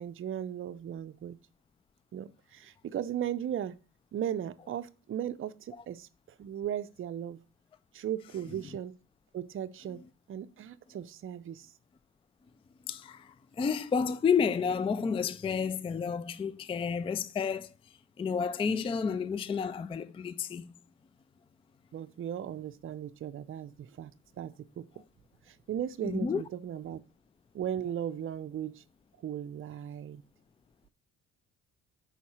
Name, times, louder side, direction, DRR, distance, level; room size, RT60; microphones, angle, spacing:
voice 1, 0.0-1.4 2.1-3.7 4.1-6.1 6.4-7.4 7.9-8.9 9.3-10.0 10.3-11.7 21.9-24.8 25.5-27.0 27.5-28.8 29.2-30.2, right 10 dB, 45° right, 0.5 m, -37 dB
voice 2, 12.9-17.7 18.2-20.7 26.0-26.4, left 6 dB, 20° left, 0.3 m, -30 dB
5.7 x 4.2 x 6.0 m
cardioid pair, 90°, 30 cm